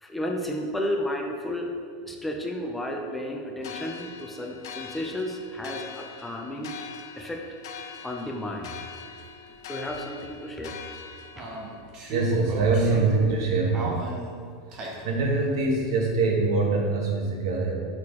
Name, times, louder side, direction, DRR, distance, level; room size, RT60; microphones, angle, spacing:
voice 1, 0.0-1.7 2.1-6.7 7.2-7.4 8.0-8.7 9.7-10.7, left 1 dB, 5° left, 1 dB, 0.4 m, -32 dB
sound 1, 3.6-11.8, left 6 dB, 80° left, 0.6 m, -42 dB
sound 2, 9.5-9.6 9.9-10.0 11.4-13.4 13.7-15.1, right 1 dB, 30° right, 0.8 m, -36 dB
voice 2, 12.1-14.0 15.0-17.7, right 3 dB, 85° right, 0 dB, 1.2 m, -24 dB
6.1 x 4.8 x 3.6 m, 2.1 s
supercardioid pair, 175°, 2 cm